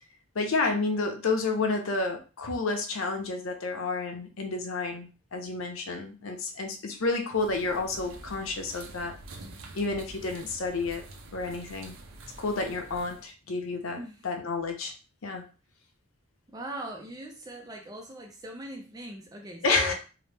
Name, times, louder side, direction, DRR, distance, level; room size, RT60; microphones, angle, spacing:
voice 1, 0.3-9.1 9.7-11.0 11.3-12.0 12.4-14.0 14.2-14.9 15.2-15.4 19.6-19.9, left 3 dB, 90° left, 4 dB, 0.6 m, -30 dB
sound 1, 7.3-13.3, right 2 dB, 80° right, 0.5 m, -47 dB
voice 2, 16.5-19.9, equal, 20° right, 2 dB, 0.3 m, -40 dB
2.8 x 2.0 x 3.3 m, 0.33 s
head